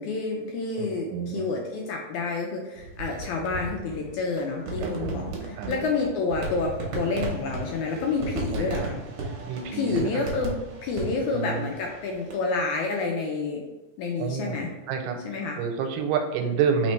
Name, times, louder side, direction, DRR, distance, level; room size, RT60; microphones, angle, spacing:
voice 1, 0.0-9.0 9.7-10.6 10.8-13.6 14.0-14.7 15.2-15.6, left 4 dB, 80° left, 0 dB, 1.8 m, -29 dB
voice 2, 0.8-1.5 4.8-5.3 5.6-5.9 8.5-8.9 9.5-10.1 11.3-11.7 14.2-15.2 15.6-16.9, right 6 dB, 90° right, 5 dB, 2.2 m, -29 dB
sound 1, 2.8-12.3, right 3 dB, 65° right, 1.4 m, -35 dB
4.1 x 4.1 x 3.1 m, 1.1 s
omnidirectional pair, 3.8 m